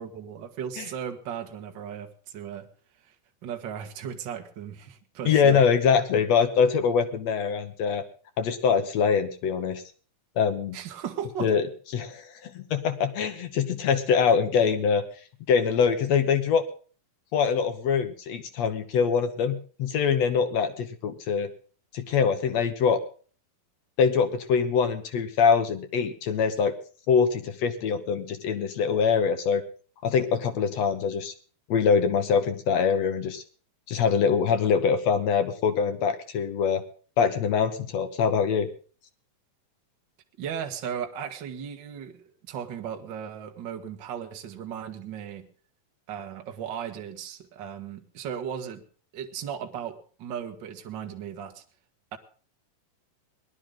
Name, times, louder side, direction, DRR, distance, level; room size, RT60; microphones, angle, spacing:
voice 1, 0.0-2.7 3.0-3.1 3.4-5.6 10.7-11.5 40.4-45.5 46.1-48.8 49.1-51.6 52.1-52.2, right 8 dB, 50° right, 5 dB, 1.4 m, -36 dB
voice 2, 5.3-8.0 8.4-9.8 10.4-10.8 11.4-11.6 11.9-15.0 15.5-16.6 17.3-21.5 21.9-23.0 24.0-26.7 27.1-29.6 30.0-31.3 31.7-33.4 33.9-36.8 37.2-38.7, left 6 dB, 65° left, 9 dB, 1.8 m, -24 dB
20.0 x 12.0 x 3.8 m, 0.41 s
omnidirectional pair, 4.2 m